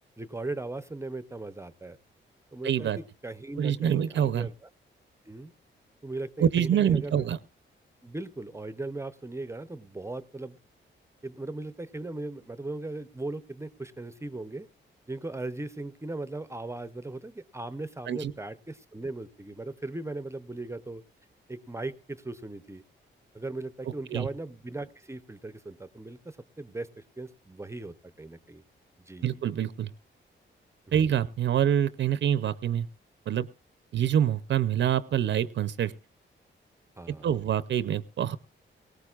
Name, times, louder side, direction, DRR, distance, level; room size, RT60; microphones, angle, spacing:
voice 1, 0.2-2.0 2.5-4.7 5.3-5.5 6.0-7.3 8.0-10.6 11.2-14.7 15.1-21.0 21.5-22.8 23.3-28.6 29.1-29.4 33.9-34.0 37.0-37.3, right 2 dB, 15° right, 13 dB, 0.6 m, -38 dB
voice 2, 2.6-3.0 3.6-4.5 6.4-7.4 18.1-18.3 24.1-24.3 29.2-29.9 30.9-32.9 33.3-33.5 33.9-35.9 37.1-38.4, right 9 dB, 70° right, 15 dB, 0.6 m, -26 dB
18.5 x 18.0 x 2.4 m, 0.31 s
wide cardioid pair, 125°, 20 cm